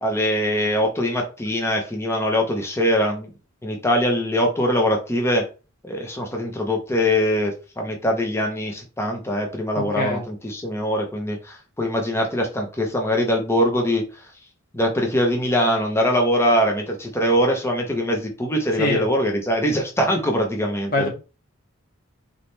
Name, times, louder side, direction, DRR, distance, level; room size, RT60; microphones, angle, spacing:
voice 1, 0.0-3.3 3.6-5.5 5.8-14.0 14.7-21.1, equal, 10° left, 1 dB, 1.0 m, -22 dB
voice 2, 9.8-10.2 18.8-19.1 20.9-21.1, left 1 dB, 45° left, -1 dB, 1.7 m, -23 dB
4.1 x 3.8 x 3.3 m, 0.32 s
head